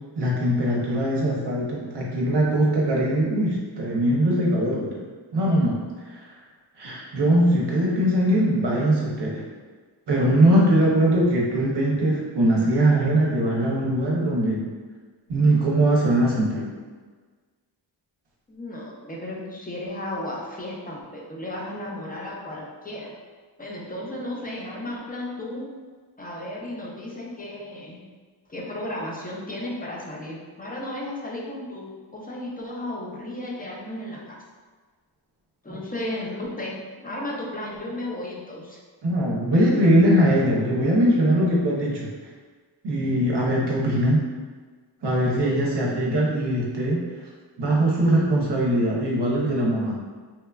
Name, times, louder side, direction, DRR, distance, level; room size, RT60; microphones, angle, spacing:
voice 1, 0.2-5.0 5.3-5.8 6.1-6.2 6.8-9.5 10.1-14.7 15.3-16.6 35.7-35.8 39.0-42.1 42.8-44.3 45.0-47.0 47.6-50.0, right 1 dB, 65° right, -4 dB, 0.6 m, -21 dB
voice 2, 18.5-23.1 23.6-25.7 26.2-28.0 28.5-34.4 35.6-38.8, left 1 dB, 20° left, -3 dB, 0.4 m, -34 dB
2.9 x 2.2 x 2.2 m, 1.5 s
wide cardioid pair, 80°, 44 cm